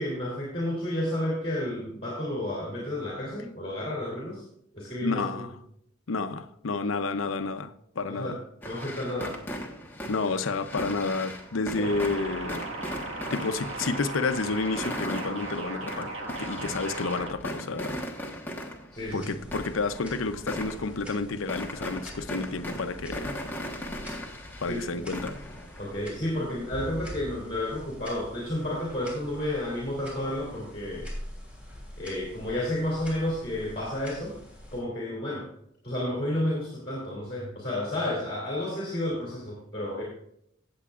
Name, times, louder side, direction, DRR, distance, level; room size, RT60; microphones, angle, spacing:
voice 1, 0.0-4.4 4.7-5.4 8.1-8.4 8.6-9.4 11.8-11.9 18.9-19.3 24.7-24.8 25.8-31.1 32.0-34.4 34.7-35.4 35.8-40.0, left 1 dB, 30° left, 2.9 m, -31 dB
voice 2, 5.0-5.5 6.1-8.4 10.1-12.7 13.3-16.1 16.4-18.0 19.1-23.4 24.6-25.4, left 3 dB, 85° left, 0.7 m, -30 dB
sound 1, 8.6-26.1, equal, 10° left, 1.2 m, -38 dB
sound 2, 11.8-17.3, right 2 dB, 90° right, 1.6 m, -37 dB
sound 3, 18.9-34.8, left 1 dB, 5° right, 3.2 m, -45 dB
16.5 x 8.0 x 2.5 m
head